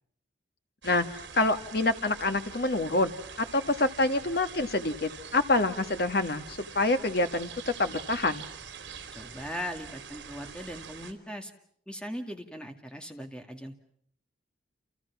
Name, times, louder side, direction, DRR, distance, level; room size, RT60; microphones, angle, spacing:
voice 1, 0.8-3.1 3.4-8.5, left 2 dB, 55° left, 8 dB, 1.6 m, -27 dB
sound 1, 0.8-11.1, right 6 dB, 75° right, 3.5 m, -45 dB
voice 2, 9.1-11.5 11.9-13.7, equal, 5° left, 5 dB, 2.1 m, -39 dB
29.0 x 29.0 x 6.1 m, 0.67 s
head